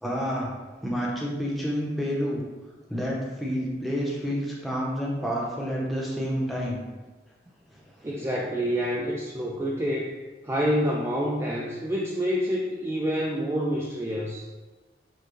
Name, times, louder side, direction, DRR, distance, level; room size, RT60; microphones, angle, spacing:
voice 1, 0.0-0.5 0.8-2.4 2.9-6.8 8.0-8.1, equal, ahead, -4 dB, 0.8 m, -29 dB
voice 2, 8.0-10.2 10.4-14.5, equal, 15° right, -4 dB, 0.4 m, -27 dB
6.7 x 2.2 x 3.1 m, 1.3 s
head